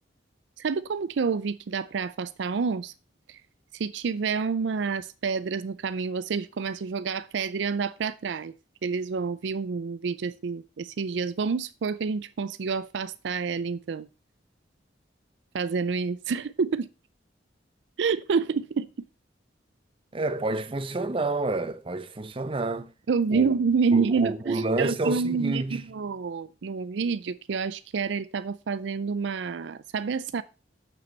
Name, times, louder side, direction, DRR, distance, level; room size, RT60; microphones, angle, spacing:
voice 1, 0.6-2.9 3.3-3.4 3.7-8.5 8.8-14.1 15.5-16.9 18.0-18.9 23.1-30.4, right 5 dB, 75° right, 0.4 m, -28 dB
voice 2, 20.1-22.9 23.3-23.5 23.9-25.9, right 2 dB, 30° right, 0.6 m, -29 dB
7.0 x 6.8 x 4.3 m
head